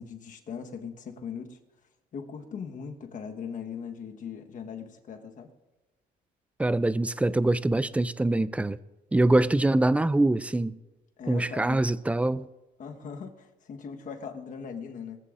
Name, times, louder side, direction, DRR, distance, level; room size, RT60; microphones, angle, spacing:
voice 1, 0.0-1.6 2.1-5.5 11.2-11.9 12.8-15.2, left 6 dB, 50° left, 1.3 m, -39 dB
voice 2, 6.6-8.8 9.1-10.8 11.3-12.5, right 2 dB, 10° right, 0.4 m, -24 dB
20.0 x 14.5 x 2.6 m
cardioid pair, 110°, 17 cm